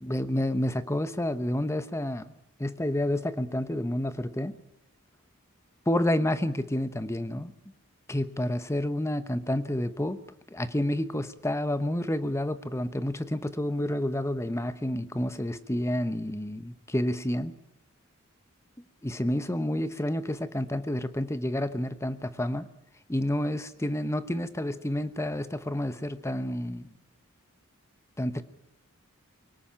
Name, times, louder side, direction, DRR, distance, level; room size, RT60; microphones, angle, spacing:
voice 1, 0.0-2.3 2.6-4.6 5.9-7.5 8.1-10.2 10.5-17.5 19.0-22.7 23.1-26.9 28.2-28.4, left 1 dB, 15° left, 12 dB, 1.0 m, -29 dB
24.0 x 18.0 x 8.9 m, 0.85 s
head